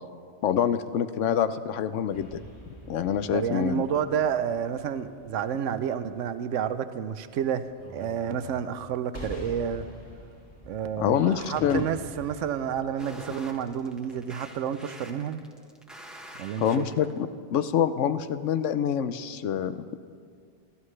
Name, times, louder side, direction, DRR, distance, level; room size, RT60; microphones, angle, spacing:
voice 1, 0.4-2.4 2.9-3.8 11.0-11.8 16.6-20.0, left 9 dB, 85° left, 12 dB, 1.0 m, -26 dB
sound 1, 2.1-14.2, equal, 65° left, 3.1 m, -46 dB
voice 2, 3.3-9.9 10.6-15.4 16.4-16.9, right 8 dB, 90° right, 12 dB, 1.0 m, -30 dB
sound 2, 13.0-17.2, equal, ahead, 1.1 m, -46 dB
26.0 x 12.5 x 3.3 m, 2.2 s
omnidirectional pair, 1.2 m